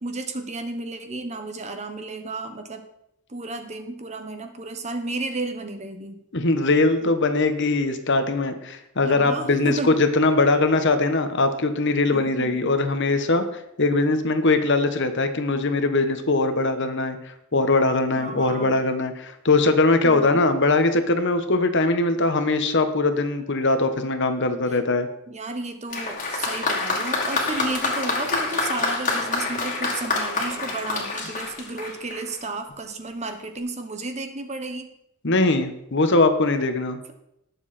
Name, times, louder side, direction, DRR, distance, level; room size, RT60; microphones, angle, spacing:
voice 1, 0.0-2.9 3.3-6.2 9.0-10.0 12.1-12.8 18.1-18.8 20.0-20.4 24.7-24.8 25.3-34.9, right 2 dB, 30° right, 7 dB, 1.2 m, -33 dB
voice 2, 6.3-13.4 13.8-17.2 17.5-25.1 35.2-37.0, left 2 dB, 55° left, 8 dB, 1.2 m, -21 dB
Applause, 25.9-32.4 33.3-33.4, left 3 dB, 35° left, 2.4 m, -27 dB
19.0 x 7.2 x 4.3 m, 0.80 s
head